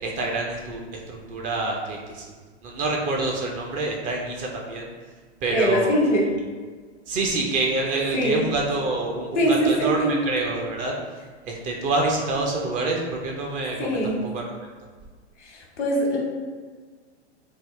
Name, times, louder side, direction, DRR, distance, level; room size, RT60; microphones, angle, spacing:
voice 1, 0.0-2.3 2.6-4.9 5.4-5.9 7.1-10.9 11.4-14.4, right 2 dB, 25° right, 0 dB, 0.4 m, -27 dB
voice 2, 5.5-6.2 8.1-8.4 9.3-10.1 13.8-14.2 15.4-16.2, equal, 85° left, -1 dB, 1.1 m, -22 dB
3.5 x 2.3 x 3.1 m, 1.5 s
hypercardioid pair, 110°, 35 cm